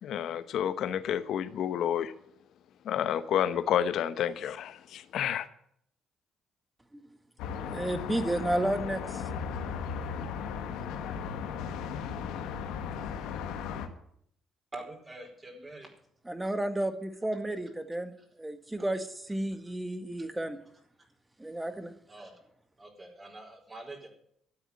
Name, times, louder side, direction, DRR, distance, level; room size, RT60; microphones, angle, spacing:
voice 1, 0.0-2.1 2.8-5.5, left 9 dB, 70° left, 12 dB, 1.0 m, -30 dB
sound 1, 7.4-13.9, left 6 dB, 90° left, 1.6 m, -36 dB
voice 2, 7.7-9.3 16.3-20.6 21.4-21.9, right 1 dB, 10° right, 9 dB, 1.8 m, -32 dB
voice 3, 14.7-15.9 22.1-22.4 22.8-24.1, right 2 dB, 30° right, -1 dB, 4.7 m, -45 dB
13.0 x 8.1 x 9.9 m, 0.69 s
cardioid pair, 85°, 0 cm